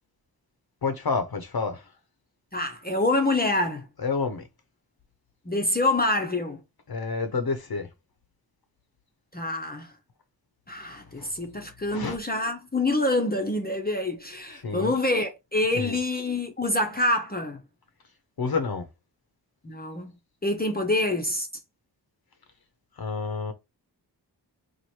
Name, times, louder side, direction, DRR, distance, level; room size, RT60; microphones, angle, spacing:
voice 1, 0.8-1.9 4.0-4.5 6.9-7.9 10.9-11.3 11.9-12.2 14.5-14.9 15.7-16.0 18.4-18.9 23.0-23.5, left 4 dB, 60° left, 0.8 m, -29 dB
voice 2, 2.5-3.8 5.5-6.6 9.3-9.9 10.7-17.6 19.6-20.2 20.4-21.5, left 2 dB, 20° left, 0.8 m, -26 dB
3.1 x 2.6 x 4.2 m
cardioid pair, 50°, 42 cm